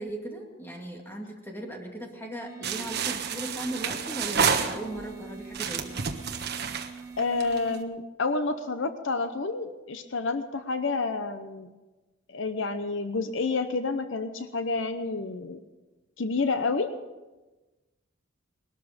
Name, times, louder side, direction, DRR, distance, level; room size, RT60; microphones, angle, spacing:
voice 1, 0.0-5.9, right 1 dB, 10° left, 1 dB, 2.2 m, -38 dB
sound 1, 2.4-7.8, right 5 dB, 15° right, 0.8 m, -44 dB
sound 2, 2.6-5.1 5.5-7.8, right 6 dB, 50° right, 1.3 m, -29 dB
voice 2, 7.2-11.7 12.3-15.6 16.2-16.9, left 3 dB, 65° left, 9 dB, 0.8 m, -29 dB
20.5 x 13.0 x 5.2 m, 1.2 s
head